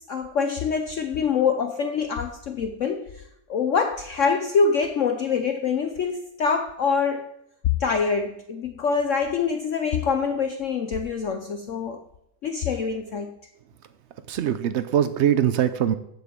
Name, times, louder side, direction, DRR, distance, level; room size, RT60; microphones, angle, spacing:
voice 1, 0.0-3.2 3.5-7.3 7.8-12.0 12.4-13.4, left 5 dB, 60° left, 6 dB, 0.9 m, -25 dB
voice 2, 14.3-15.9, right 10 dB, 90° right, 11 dB, 0.6 m, -22 dB
7.7 x 7.2 x 7.4 m, 0.78 s
omnidirectional pair, 1.8 m